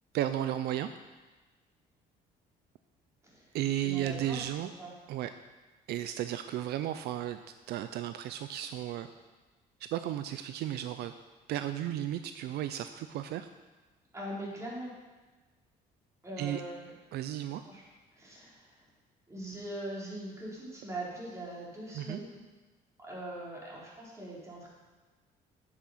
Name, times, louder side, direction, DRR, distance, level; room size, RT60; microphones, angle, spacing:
voice 1, 0.1-0.9 3.5-4.7 5.1-5.3 5.9-7.4 7.7-9.1 9.8-11.1 11.5-13.5 16.4-16.6 17.1-17.6 21.9-22.2, right 12 dB, 75° right, 10 dB, 0.5 m, -34 dB
voice 2, 3.8-4.9 14.1-14.9 16.2-16.9 17.6-17.8 18.1-18.7 19.3-22.4 23.0-24.7, right 1 dB, 20° right, -5 dB, 3.9 m, -41 dB
8.9 x 8.6 x 5.8 m, 1.2 s
cardioid pair, 110°, 17 cm